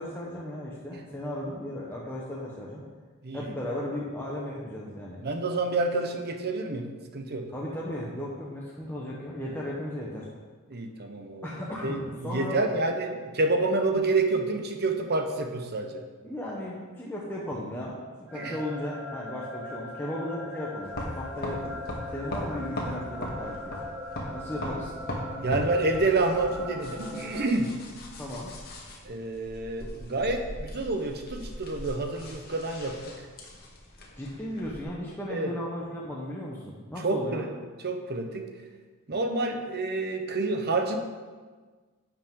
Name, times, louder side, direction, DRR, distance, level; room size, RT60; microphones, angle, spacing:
voice 1, 0.0-2.8 3.3-5.2 7.5-10.3 11.4-12.6 14.0-14.1 16.2-21.8 22.1-23.8 24.3-24.9 28.2-28.5 34.2-37.4, left 1 dB, 10° left, -5 dB, 1.1 m, -36 dB
voice 2, 3.2-3.5 5.2-7.5 10.7-11.5 11.8-16.0 18.3-18.6 25.4-27.8 29.0-33.1 35.3-35.5 37.0-37.4 37.8-38.5 39.1-41.0, right 2 dB, 50° right, 5 dB, 1.0 m, -28 dB
sound 1, 18.3-27.5, left 1 dB, 10° right, 1.4 m, -40 dB
sound 2, 20.8-34.8, left 1 dB, 45° left, 1.8 m, -39 dB
11.5 x 7.3 x 3.8 m, 1.4 s
head